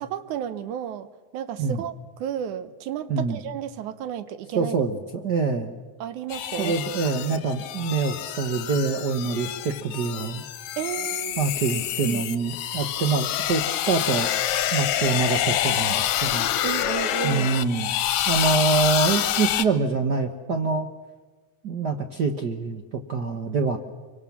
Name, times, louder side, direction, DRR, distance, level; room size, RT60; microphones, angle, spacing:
voice 1, 0.0-1.1 1.3-4.8 6.0-6.8 10.8-11.4 11.7-12.2 16.6-17.5, right 9 dB, 80° right, 13 dB, 2.4 m, -32 dB
voice 2, 4.5-5.8 6.6-10.4 11.4-14.3 14.7-16.5 17.2-17.9 18.3-20.9 21.6-23.8, right 4 dB, 55° right, 6 dB, 1.1 m, -25 dB
sound 1, 6.3-19.7, left 11 dB, 70° left, 2.2 m, -27 dB
25.0 x 24.0 x 7.2 m, 1.3 s
omnidirectional pair, 3.4 m